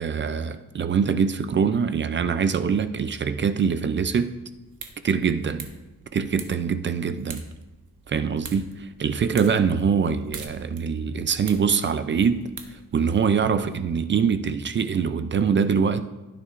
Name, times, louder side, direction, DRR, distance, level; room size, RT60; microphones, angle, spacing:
voice 1, 0.0-4.3 5.0-5.7 6.1-7.4 8.1-12.5 12.9-16.0, right 6 dB, 40° right, 11 dB, 0.4 m, -23 dB
sound 1, 4.5-13.3, right 6 dB, 75° right, 1.1 m, -45 dB
15.5 x 9.7 x 2.5 m, 1.1 s
wide cardioid pair, 175°, 31 cm